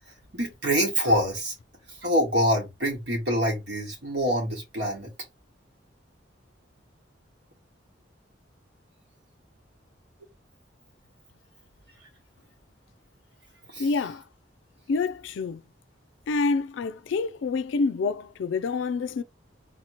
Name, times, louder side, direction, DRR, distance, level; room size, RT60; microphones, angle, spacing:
voice 1, 0.3-1.5 2.0-5.1 13.7-13.9, equal, 60° right, 1.5 m, -25 dB
voice 2, 13.8-14.3 14.9-15.6 16.3-19.2, left 4 dB, 80° left, 0.3 m, -27 dB
4.2 x 2.9 x 2.9 m
head